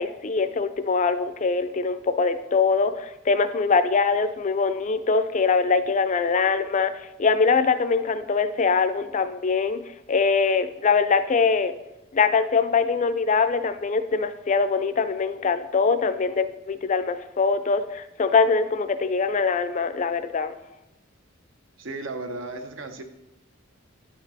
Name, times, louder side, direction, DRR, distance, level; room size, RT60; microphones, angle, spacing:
voice 1, 0.0-9.8 10.1-11.7 12.1-20.5, left 5 dB, 35° left, 11 dB, 0.4 m, -23 dB
voice 2, 21.8-23.0, right 2 dB, 65° right, 8 dB, 0.8 m, -34 dB
10.0 x 5.2 x 4.0 m, 0.92 s
head